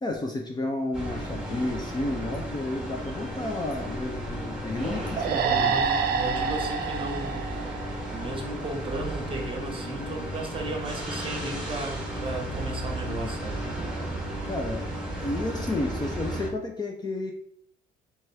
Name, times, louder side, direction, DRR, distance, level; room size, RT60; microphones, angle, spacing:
voice 1, 0.0-5.8 13.1-13.3 14.5-14.9 15.2-17.3, left 2 dB, 20° left, 1 dB, 0.6 m, -32 dB
sound 1, 0.9-16.5, right 1 dB, 5° right, 1.1 m, -34 dB
sound 2, 5.2-8.6, right 6 dB, 50° right, 0.4 m, -28 dB
voice 2, 5.3-7.7 8.1-13.6, right 2 dB, 25° right, 2 dB, 0.9 m, -35 dB
4.2 x 3.5 x 3.2 m, 0.66 s
cardioid pair, 125°, 20 cm